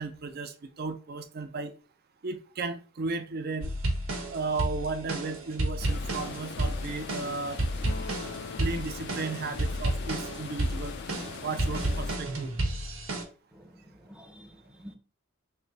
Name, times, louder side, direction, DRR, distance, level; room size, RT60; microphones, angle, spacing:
voice 1, 0.0-1.7 2.2-3.7 4.3-7.6 8.6-10.9 11.4-12.5, right 4 dB, 50° right, 0.5 m, -34 dB
sound 1, 3.6-13.2, right 1 dB, 80° right, 1.1 m, -31 dB
sound 2, 5.8-12.2, left 6 dB, 55° left, 0.4 m, -41 dB
Acoustic guitar, 7.9-11.7, left 4 dB, 70° left, 0.9 m, -47 dB
voice 2, 13.5-15.0, equal, 5° right, 0.6 m, -50 dB
3.3 x 2.6 x 3.9 m
head